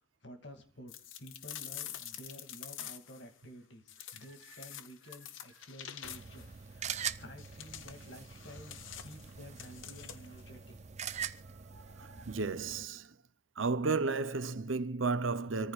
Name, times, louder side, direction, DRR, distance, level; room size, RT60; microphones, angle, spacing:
voice 1, 0.2-0.9 1.2-10.8, equal, 60° left, 2.6 m, -52 dB
sound 1, 0.9-3.2 3.9-6.5 7.4-10.4, left 10 dB, 80° left, 1.0 m, -47 dB
sound 2, 6.0-12.8, right 8 dB, 35° right, 0.6 m, -43 dB
voice 2, 11.7-13.1 13.6-15.7, right 4 dB, 80° right, 0.9 m, -33 dB
26.0 x 14.5 x 2.5 m
head